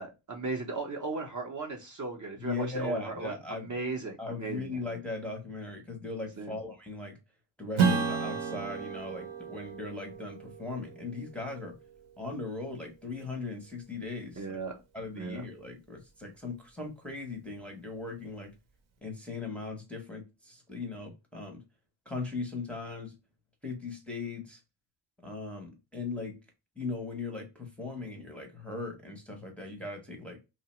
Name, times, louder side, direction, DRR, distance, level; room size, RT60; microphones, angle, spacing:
voice 1, 0.0-4.8 6.4-6.6 14.4-14.7 15.2-15.4, right 3 dB, 40° right, 0.6 m, -37 dB
voice 2, 2.4-3.7 4.2-7.2 7.6-11.8 12.2-14.6 14.9-18.5 19.0-21.6 22.1-23.1 23.6-24.6 25.2-26.4 26.8-30.4, left 3 dB, 5° left, 0.6 m, -38 dB
Strum, 7.8-12.7, right 5 dB, 75° right, 0.8 m, -33 dB
2.8 x 2.1 x 2.9 m
wide cardioid pair, 125°, 48 cm